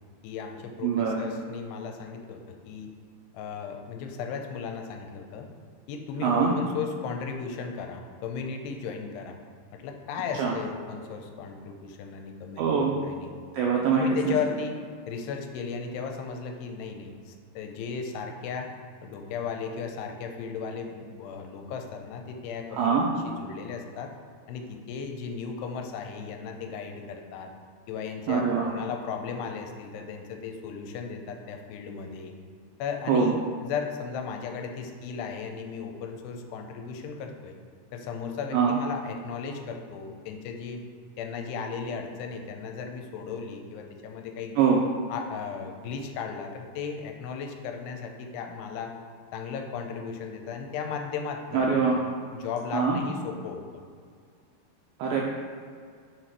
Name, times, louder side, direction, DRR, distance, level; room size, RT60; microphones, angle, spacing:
voice 1, 0.2-2.9 3.3-5.5 5.9-9.4 9.7-12.8 13.0-13.4 13.9-14.8 15.1-18.7 19.0-24.1 24.5-27.5 27.9-32.3 32.8-37.5 37.9-40.8 41.2-44.6 45.1-48.9 49.3-51.9 52.3-53.6, left 6 dB, 90° left, 4 dB, 2.7 m, -36 dB
voice 2, 0.8-1.2 6.2-6.5 10.4-10.5 12.6-13.0 13.5-14.3 22.7-23.1 28.3-28.7 33.1-33.3 38.5-38.7 44.6-44.8 51.5-52.0 52.7-53.0 55.0-55.2, right 6 dB, 85° right, -2 dB, 2.1 m, -23 dB
6.3 x 4.2 x 4.6 m, 2.1 s
omnidirectional pair, 4.8 m